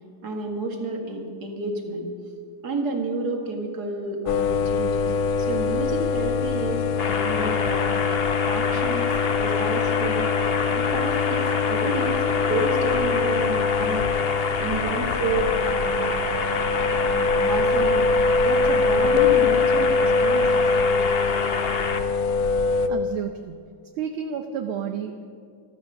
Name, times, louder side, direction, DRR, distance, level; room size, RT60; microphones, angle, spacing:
voice 1, 0.2-2.1 2.6-7.9 8.4-9.1 9.4-10.3 10.7-14.0 14.6-16.4 17.0-20.7, right 3 dB, 45° right, 2 dB, 2.4 m, -31 dB
sound 1, 4.3-22.9, left 4 dB, 80° left, 1.5 m, -23 dB
sound 2, 7.0-22.0, left 5 dB, 60° left, 0.6 m, -28 dB
voice 2, 22.9-23.6 24.0-25.3, right 7 dB, 75° right, 5 dB, 1.6 m, -31 dB
14.5 x 13.5 x 6.6 m, 2.3 s
omnidirectional pair, 2.4 m